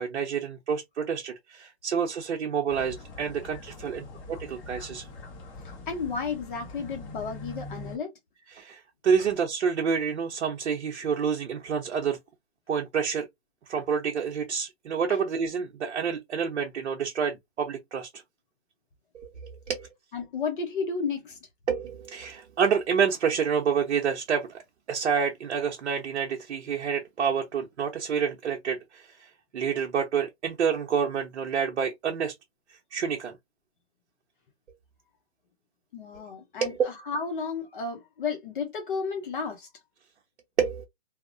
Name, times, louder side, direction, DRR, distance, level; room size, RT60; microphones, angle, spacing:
voice 1, 0.0-5.1 8.5-12.2 12.7-13.3 13.7-18.1 19.1-19.9 21.7-24.6 24.9-32.3 32.9-33.3 36.6-36.8 40.6-40.9, right 6 dB, 85° right, 0.7 m, -28 dB
sound 1, 2.7-8.0, left 2 dB, 30° left, 1.1 m, -43 dB
voice 2, 5.6-8.2 15.1-15.2 20.1-21.4 35.9-39.7, left 5 dB, 50° left, 0.7 m, -33 dB
2.7 x 2.0 x 2.5 m
hypercardioid pair, 150°, 34 cm